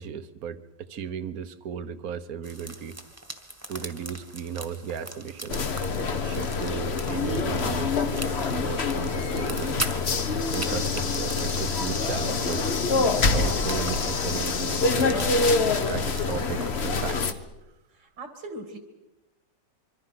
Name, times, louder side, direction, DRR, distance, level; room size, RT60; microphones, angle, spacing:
voice 1, 0.0-3.0 3.7-5.8 6.2-9.9 10.5-12.6 13.2-15.3 15.9-17.4, right 8 dB, 60° right, 12 dB, 1.4 m, -35 dB
sound 1, 2.4-16.9, right 1 dB, 10° right, 1.5 m, -41 dB
sound 2, 5.5-17.3, left 4 dB, 40° left, 1.2 m, -26 dB
voice 2, 18.0-18.8, right 1 dB, 80° right, 5 dB, 2.9 m, -40 dB
25.5 x 24.0 x 5.9 m, 1.1 s
omnidirectional pair, 1.9 m